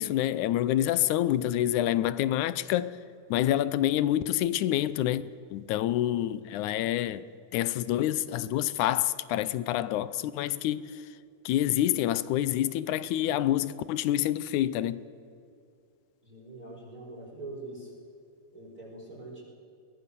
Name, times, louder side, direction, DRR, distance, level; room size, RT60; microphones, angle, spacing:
voice 1, 0.0-3.0 3.3-5.2 5.5-7.2 7.5-11.0 11.5-15.0, left 13 dB, 75° left, 2.0 m, -27 dB
voice 2, 16.2-17.9 18.5-19.4, right 2 dB, 25° right, 5.0 m, -43 dB
22.5 x 20.0 x 6.9 m
omnidirectional pair, 3.8 m